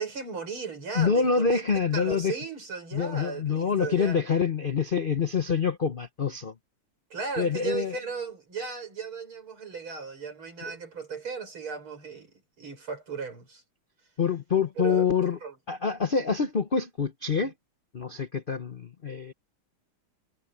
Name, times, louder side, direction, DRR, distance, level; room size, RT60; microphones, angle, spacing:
voice 1, 0.0-1.7 1.9-4.2 7.1-13.6 14.8-15.1 15.4-15.5, right 5 dB, 75° right, 6.6 m, -36 dB
voice 2, 0.9-2.3 2.9-6.5 7.4-8.0 10.6-10.7 14.2-15.4 15.7-17.5 17.9-19.3, left 6 dB, 55° left, 0.5 m, -26 dB
omnidirectional pair, 2.3 m